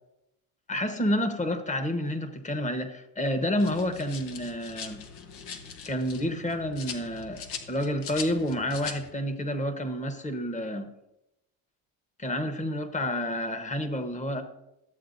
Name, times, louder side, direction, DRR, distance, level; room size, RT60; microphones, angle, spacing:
voice 1, 0.7-5.0 5.9-10.9 12.2-14.4, left 1 dB, 20° left, 8 dB, 1.1 m, -29 dB
sound 1, 3.6-9.1, left 6 dB, 80° left, 1.2 m, -41 dB
13.0 x 7.7 x 2.6 m, 0.88 s
supercardioid pair, 80°, 38 cm